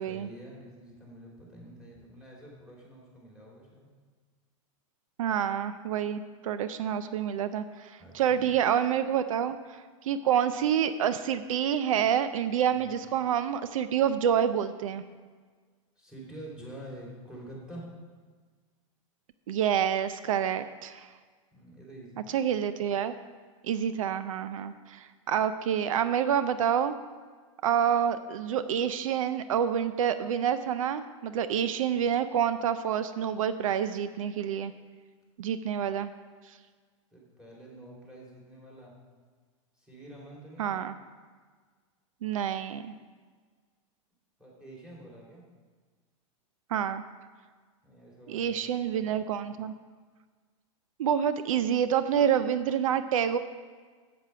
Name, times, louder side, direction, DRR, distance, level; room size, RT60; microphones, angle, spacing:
voice 1, 0.1-3.9 8.0-8.6 12.7-13.0 16.0-17.9 21.5-22.5 37.1-38.9 39.7-40.8 44.4-45.4 47.8-49.4, right 1 dB, 5° right, -4 dB, 2.9 m, -47 dB
voice 2, 5.2-15.0 19.5-21.1 22.3-23.1 23.6-27.0 27.6-34.7 35.4-36.1 40.6-40.9 42.2-42.9 46.7-47.0 48.3-49.7 51.0-53.4, right 9 dB, 85° right, 12 dB, 0.5 m, -28 dB
8.1 x 7.9 x 5.6 m, 1.5 s
hypercardioid pair, 125°, 17 cm